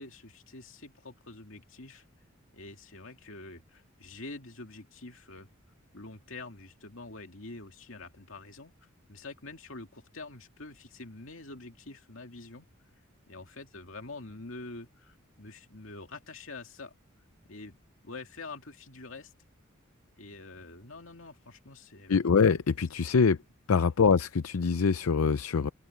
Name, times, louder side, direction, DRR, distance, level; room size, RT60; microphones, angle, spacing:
voice 1, 0.0-2.1 2.5-5.5 5.9-8.7 9.1-12.7 13.3-16.9 17.5-17.8 18.0-19.3 20.2-22.2, left 3 dB, 65° left, 2.7 m, -46 dB
voice 2, 22.1-23.4 23.7-25.7, left 5 dB, 80° left, 0.5 m, -24 dB
open air
head